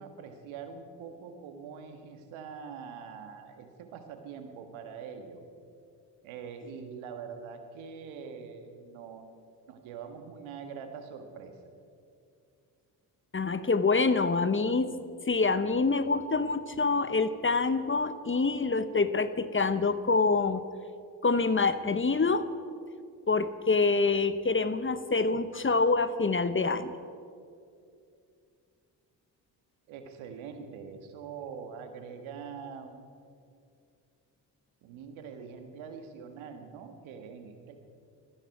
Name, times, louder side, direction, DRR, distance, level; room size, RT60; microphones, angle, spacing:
voice 1, 0.0-5.4 6.2-11.5 29.9-33.1 34.8-37.9, right 6 dB, 80° right, 6 dB, 1.7 m, -44 dB
voice 2, 13.3-14.9 15.3-20.6 21.2-22.5 23.3-26.9, left 4 dB, 25° left, 12 dB, 1.0 m, -26 dB
20.5 x 15.0 x 4.8 m, 2.4 s
hypercardioid pair, 45°, 47 cm